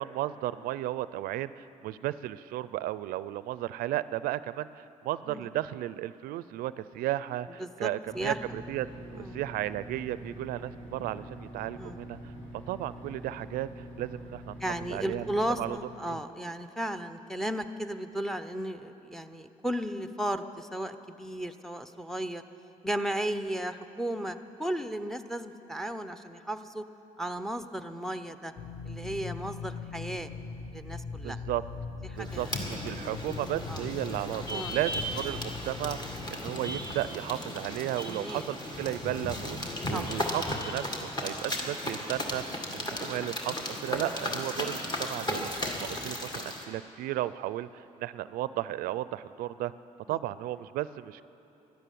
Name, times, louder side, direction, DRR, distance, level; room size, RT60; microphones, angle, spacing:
voice 1, 0.0-12.3 12.7-14.6 14.9-15.3 15.6-15.8 16.1-16.2 31.1-31.6 32.1-49.7 50.1-51.2, right 14 dB, 90° right, 16 dB, 0.4 m, -34 dB
voice 2, 7.6-7.9 8.1-8.4 9.1-9.4 11.8-12.0 14.6-22.4 22.8-26.8 27.2-28.5 28.8-30.3 30.7-31.4 32.0-32.6 33.7-33.8 34.5-34.7 38.1-38.5 39.9-40.0 50.1-50.2, right 1 dB, 5° left, 9 dB, 0.6 m, -35 dB
sound 1, 8.1-15.7, equal, 85° left, 3.6 m, -45 dB
sound 2, 28.6-36.3, left 5 dB, 45° left, 0.8 m, -41 dB
sound 3, 32.2-46.6, left 1 dB, 30° left, 2.0 m, -35 dB
12.5 x 12.0 x 9.2 m, 3.0 s
cardioid pair, 105°, 15 cm